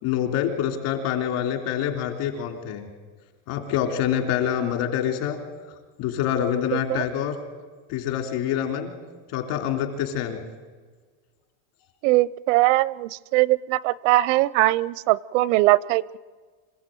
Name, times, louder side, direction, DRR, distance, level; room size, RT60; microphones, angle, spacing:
voice 1, 0.0-2.9 3.5-5.4 6.0-7.4 7.9-9.0 9.3-10.4, left 9 dB, 60° left, 5 dB, 3.5 m, -26 dB
voice 2, 6.7-7.0 12.0-16.2, right 18 dB, 75° right, 22 dB, 0.7 m, -21 dB
26.5 x 16.0 x 9.2 m, 1.5 s
cardioid pair, 165°, 37 cm